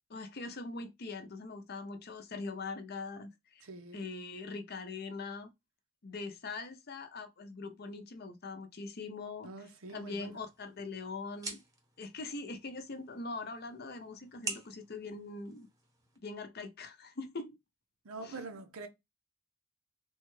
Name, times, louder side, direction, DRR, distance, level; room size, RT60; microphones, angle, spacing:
voice 1, 0.1-3.6 3.9-5.5 6.0-9.5 9.9-11.6 12.0-15.7 16.2-17.6 18.2-18.4, left 3 dB, 50° left, 0.6 m, -42 dB
voice 2, 3.6-4.1 9.4-10.4 18.0-18.9, right 3 dB, 85° right, 0.7 m, -45 dB
sound 1, 10.1-16.2, right 2 dB, 15° right, 0.7 m, -47 dB
3.5 x 2.2 x 3.1 m
head